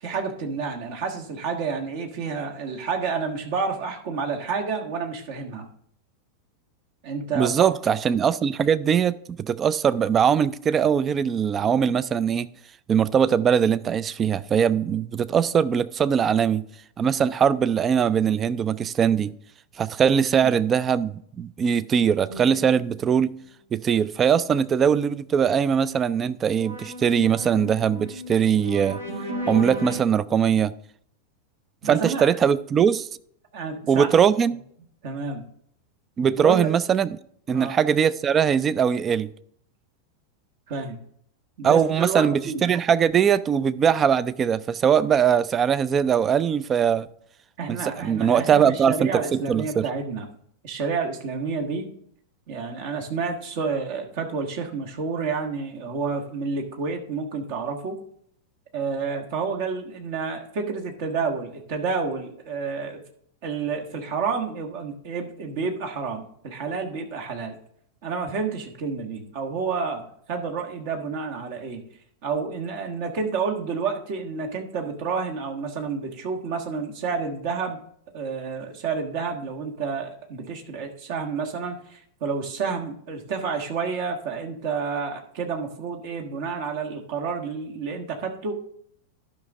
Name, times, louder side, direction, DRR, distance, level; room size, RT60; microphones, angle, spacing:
voice 1, 0.0-5.7 7.0-7.7 20.3-20.5 31.8-32.4 33.5-34.1 35.0-35.4 36.3-36.7 37.5-37.8 40.7-41.0 41.6-42.7 47.6-50.3 50.6-51.9 52.5-58.0 58.7-63.0 63.4-67.5 68.0-71.8 72.2-77.8 78.1-88.5, right 5 dB, 50° right, 1.4 m, -29 dB
voice 2, 7.4-12.5 12.9-16.6 17.0-19.3 19.8-23.3 23.7-29.0 29.5-30.7 31.9-33.1 33.9-34.6 36.2-37.1 37.5-39.3 41.6-47.1 47.7-49.9, right 7 dB, 25° right, 0.3 m, -21 dB
sound 1, 22.3-23.4 26.6-30.0, equal, 75° right, 2.1 m, -34 dB
12.0 x 5.7 x 3.6 m
figure-of-eight pair, 90°, 0 cm